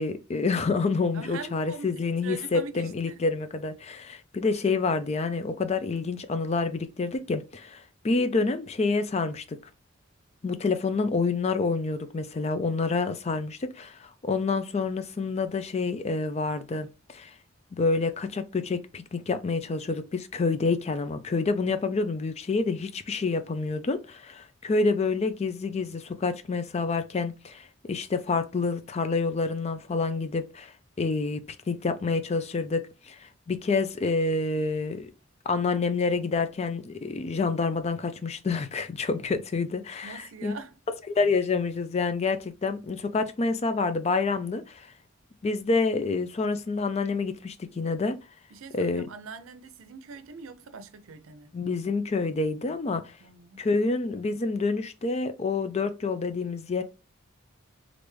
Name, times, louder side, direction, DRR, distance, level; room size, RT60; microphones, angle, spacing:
voice 1, 0.0-9.6 10.4-17.3 17.7-31.4 31.7-35.1 35.5-40.5 41.1-44.9 45.4-48.2 48.7-49.1 51.5-53.1 53.6-56.8, left 4 dB, 30° left, 0.4 m, -28 dB
voice 2, 1.1-3.2 40.0-40.7 48.5-51.5 53.2-53.6, right 5 dB, 90° right, 0.5 m, -42 dB
3.3 x 2.5 x 3.1 m
head